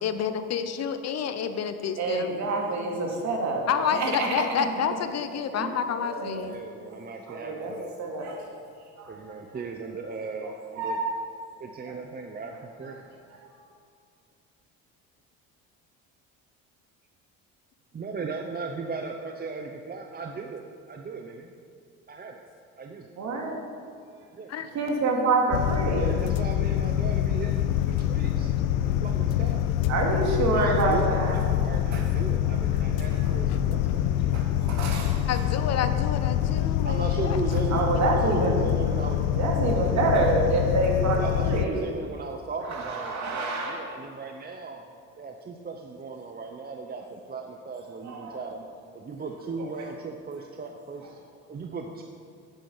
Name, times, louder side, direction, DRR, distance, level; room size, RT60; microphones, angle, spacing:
voice 1, 0.0-2.5 3.7-6.6 24.5-24.7 35.3-37.8, left 7 dB, 55° left, 10 dB, 0.9 m, -29 dB
voice 2, 2.0-4.7 5.5-5.7 6.0-6.5 7.3-7.7 8.0-8.4 9.0-9.1 10.8-11.1 11.9-12.0 13.4-13.5 23.2-23.6 24.7-26.1 29.9-31.3 31.9-32.0 34.3-35.3 37.7-38.6 39.3-41.8 42.6-43.9 48.0-48.4 49.6-49.7, right 3 dB, 60° right, 0 dB, 2.5 m, -27 dB
voice 3, 6.5-8.0 9.1-11.0 11.6-13.0 17.9-21.5 22.1-22.4 22.8-23.1 24.3-24.5 25.9-28.5 28.8-29.7 30.5-34.2 36.8-39.2 41.1-44.8 45.2-48.6 48.9-51.2 51.5-52.0, right 4 dB, 30° right, 3 dB, 0.8 m, -37 dB
sound 1, 25.5-41.6, left 11 dB, 90° left, 0.6 m, -25 dB
10.0 x 9.0 x 5.6 m, 2.4 s
supercardioid pair, 90°, 32 cm